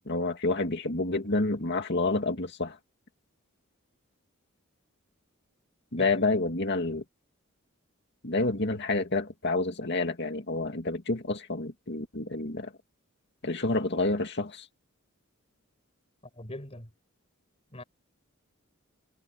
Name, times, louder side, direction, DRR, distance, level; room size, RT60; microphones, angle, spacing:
voice 1, 0.0-2.8 5.9-7.0 8.2-12.7 13.4-14.7, left 2 dB, 55° left, 2.3 m, -29 dB
voice 2, 6.0-6.3 16.3-16.9 17.7-17.8, left 1 dB, 30° left, 4.9 m, -42 dB
head